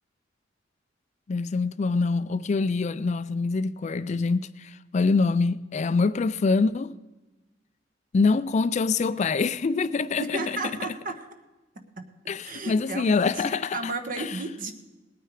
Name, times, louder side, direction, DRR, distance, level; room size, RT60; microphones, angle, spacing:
voice 1, 1.3-6.9 8.1-10.6 12.3-14.3, left 4 dB, 40° left, 0.4 m, -25 dB
voice 2, 10.2-11.3 12.0-12.1 12.4-14.7, right 3 dB, 50° right, 1.2 m, -33 dB
19.0 x 9.0 x 4.8 m
head